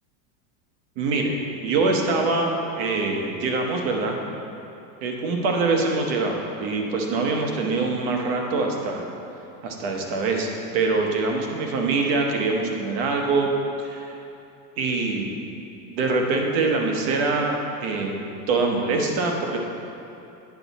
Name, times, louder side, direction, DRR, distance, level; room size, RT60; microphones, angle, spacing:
voice 1, 1.0-1.3 1.6-4.2 5.0-9.1 9.6-10.5 10.7-13.5 13.8-14.2 14.8-15.4 15.9-18.2 18.5-19.6, right 3 dB, 40° right, 1 dB, 1.0 m, -24 dB
9.3 x 6.8 x 4.1 m, 2.8 s
supercardioid pair, 175°, 49 cm